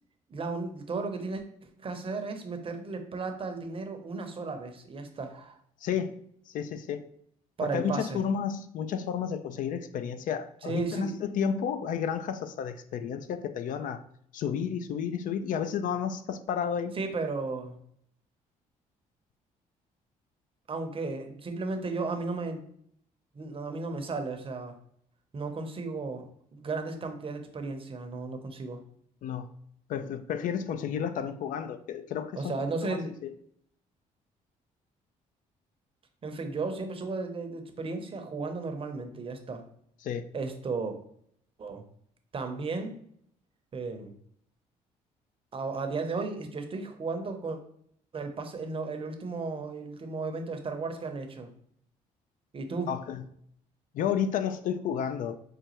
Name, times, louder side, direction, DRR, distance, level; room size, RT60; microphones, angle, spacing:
voice 1, 0.3-1.4 1.8-5.6 7.6-8.2 10.6-11.2 16.9-17.8 20.7-22.6 23.3-24.7 25.3-26.3 26.5-28.8 32.4-33.1 36.2-39.6 40.3-41.0 41.6-41.8 42.3-43.0 43.7-44.1 45.5-47.6 48.1-51.5 52.5-52.9, right 3 dB, 40° right, 5 dB, 0.7 m, -34 dB
voice 2, 5.8-6.2 6.5-7.0 7.6-14.0 14.3-16.9 29.2-29.5 29.9-33.3 40.0-40.3 52.9-53.2 53.9-55.4, left 7 dB, 65° left, 10 dB, 0.4 m, -32 dB
5.0 x 2.2 x 2.9 m, 0.67 s
supercardioid pair, 70°, 15 cm